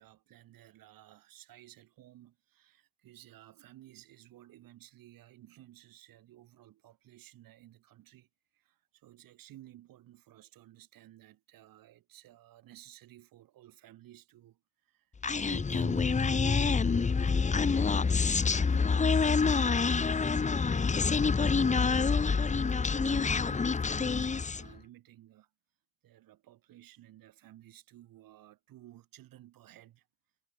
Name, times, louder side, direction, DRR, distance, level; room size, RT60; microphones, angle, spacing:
voice 1, 0.0-8.3 8.5-17.4 17.9-20.8 21.1-25.5 26.0-30.1, right 14 dB, 75° right, 7.8 m, -55 dB
Human voice, 15.2-24.7, left 5 dB, 20° left, 0.9 m, -27 dB
supercardioid pair, 80°, 35 cm